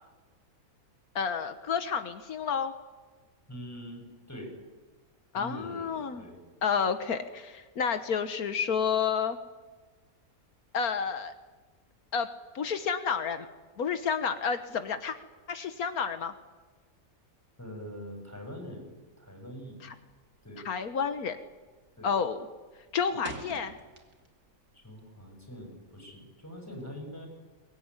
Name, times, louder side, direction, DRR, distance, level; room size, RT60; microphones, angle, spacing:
voice 1, 1.1-2.7 5.3-6.2 6.6-9.4 10.7-11.3 12.1-12.3 12.5-13.5 13.8-15.2 15.5-16.3 19.8-19.9 20.6-21.4 22.0-22.4 22.9-23.7, left 6 dB, 80° left, 9 dB, 1.7 m, -30 dB
voice 2, 3.5-4.5 5.3-6.4 17.6-18.9 19.2-19.8 20.4-20.6 22.0-22.1 24.7-27.3, equal, 10° left, 2 dB, 6.7 m, -43 dB
sound 1, 20.1-20.4 20.7-21.1 21.4-21.8 22.2-24.5 24.8-26.3, right 2 dB, 85° right, 2.9 m, -46 dB
23.0 x 21.0 x 9.8 m, 1.3 s
omnidirectional pair, 1.5 m